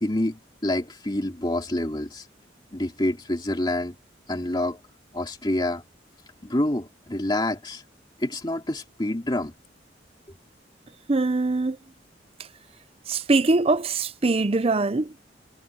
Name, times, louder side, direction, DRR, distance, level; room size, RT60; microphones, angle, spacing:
voice 1, 0.0-2.3 2.7-3.9 4.3-4.8 5.1-5.8 6.4-7.8 8.2-9.5, left 1 dB, 25° left, 2.6 m, -27 dB
voice 2, 11.1-11.8 13.1-15.1, right 3 dB, 30° right, 0.5 m, -22 dB
head